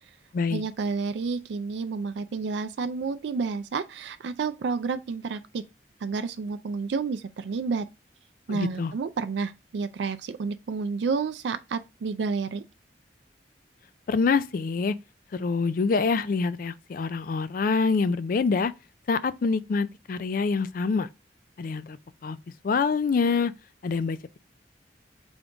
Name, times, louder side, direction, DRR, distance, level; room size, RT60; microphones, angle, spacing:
voice 1, 0.5-5.6 6.0-7.9 8.5-12.6, right 4 dB, 75° right, 0.4 m, -30 dB
voice 2, 8.5-8.9 14.1-15.0 15.3-18.7 19.1-21.1 21.6-22.4 22.6-23.5 23.8-24.4, left 4 dB, 50° left, 0.3 m, -26 dB
3.7 x 3.5 x 3.8 m
head